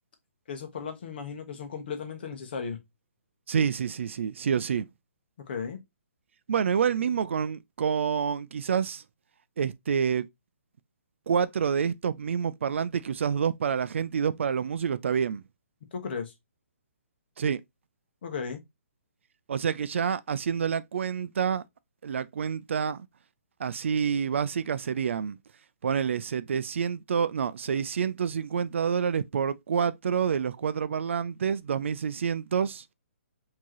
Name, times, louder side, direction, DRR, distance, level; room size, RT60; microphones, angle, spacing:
voice 1, 0.5-2.8 5.5-5.8 15.9-16.3 18.2-18.6, left 6 dB, 45° left, 1.1 m, -35 dB
voice 2, 3.5-4.9 6.5-9.0 9.6-10.3 11.3-15.4 17.4-17.6 19.5-21.6 22.0-23.1 23.6-25.4 25.8-32.8, right 7 dB, 60° right, 0.4 m, -28 dB
4.5 x 2.9 x 2.9 m
hypercardioid pair, 165°, 7 cm